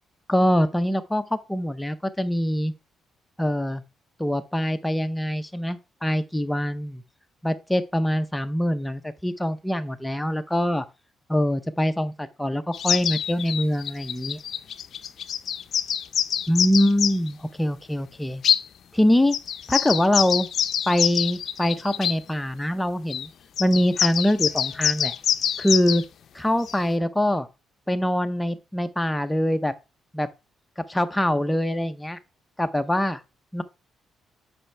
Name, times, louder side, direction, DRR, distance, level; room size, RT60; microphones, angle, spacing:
voice 1, 0.3-2.7 3.4-3.8 4.2-7.0 7.4-10.8 11.3-14.4 16.5-18.4 18.9-19.4 19.7-20.5 20.9-23.3 23.6-25.1 25.6-26.0 26.3-27.5 27.9-29.7 30.1-30.3 30.9-32.2 32.6-33.2 33.5-33.6, equal, 5° left, 0.7 m, -24 dB
sound 1, 12.7-17.3 18.4-18.6 19.3-22.2 23.1-23.3 23.6-26.0 26.7-26.8, left 9 dB, 65° left, 0.5 m, -25 dB
7.5 x 5.6 x 3.3 m
cardioid pair, 90°, 0 cm